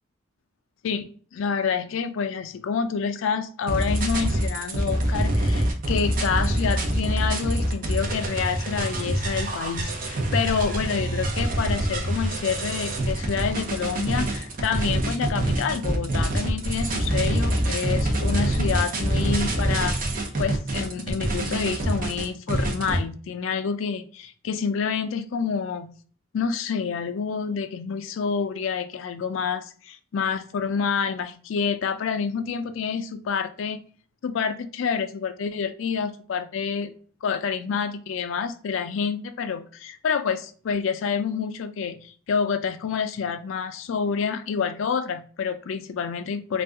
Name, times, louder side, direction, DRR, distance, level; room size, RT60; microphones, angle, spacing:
voice 1, 0.8-20.0 20.4-25.9 26.3-33.8 34.2-36.9 37.2-46.6, left 6 dB, 70° left, 10 dB, 0.4 m, -28 dB
sound 1, 3.7-23.0, right 1 dB, 40° right, 0.6 m, -25 dB
2.7 x 2.4 x 3.5 m, 0.43 s
head